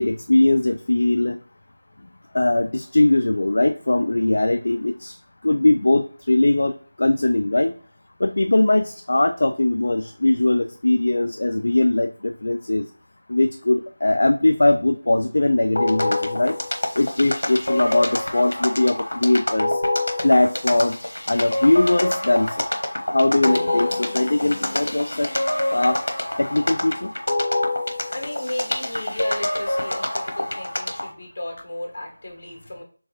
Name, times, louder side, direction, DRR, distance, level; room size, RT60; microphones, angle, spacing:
voice 1, 0.0-1.4 2.3-5.2 5.4-7.7 8.2-12.9 13.3-16.6 17.0-19.8 20.2-21.0 21.3-22.6 23.1-25.3 25.7-26.0 26.4-27.1, left 2 dB, 55° left, 7 dB, 0.3 m, -20 dB
sound 1, 15.8-31.1, left 1 dB, 80° left, 0.9 m, -26 dB
voice 2, 27.7-32.8, left 1 dB, 40° left, 1 dB, 1.7 m, -34 dB
4.5 x 3.5 x 2.9 m, 0.42 s
figure-of-eight pair, 170°, 0 cm